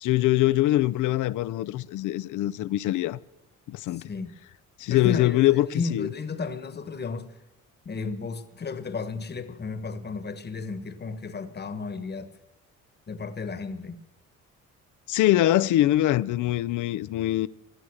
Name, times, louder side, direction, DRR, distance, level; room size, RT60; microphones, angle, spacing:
voice 1, 0.0-3.2 3.7-4.1 4.8-6.1 15.1-17.5, left 15 dB, 80° left, 0.6 m, -23 dB
voice 2, 3.9-4.3 4.9-7.3 7.8-12.3 13.1-14.0, left 4 dB, 35° left, 1.3 m, -33 dB
17.0 x 12.0 x 6.3 m
cardioid pair, 90°, 30 cm